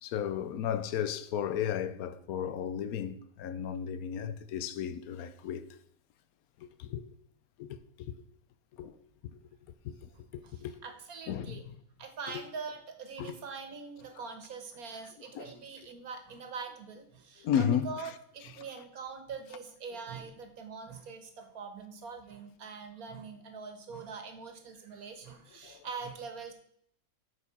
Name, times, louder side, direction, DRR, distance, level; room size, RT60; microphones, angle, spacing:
voice 1, 0.0-5.7 6.6-7.1 7.6-8.2 8.8-9.0 9.3-9.4 9.8-10.8 11.3-11.8 12.3-12.4 13.2-13.3 15.3-15.5 17.4-18.1 18.4-18.5 25.6-25.9, left 9 dB, 85° left, 1.1 m, -34 dB
voice 2, 10.4-11.6 12.0-26.5, right 5 dB, 85° right, 1.7 m, -43 dB
8.3 x 5.0 x 5.9 m
omnidirectional pair, 1.5 m